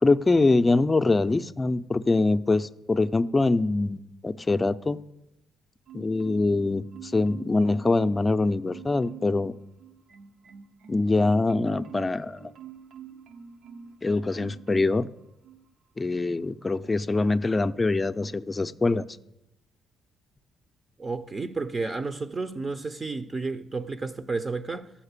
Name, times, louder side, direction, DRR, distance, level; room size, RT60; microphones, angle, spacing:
voice 1, 0.0-5.0 5.9-9.5 10.9-12.5 14.0-15.1 16.0-19.0, left 3 dB, 20° left, 0.5 m, -24 dB
Marimba xylophone, 5.9-6.6 6.9-8.4 8.7-9.4 9.8-14.0 14.3-15.1 15.4-15.6, right 7 dB, 80° right, 0.9 m, -46 dB
voice 2, 21.0-24.9, right 3 dB, 30° right, 0.6 m, -31 dB
13.5 x 5.8 x 8.2 m
cardioid pair, 90°, 0 cm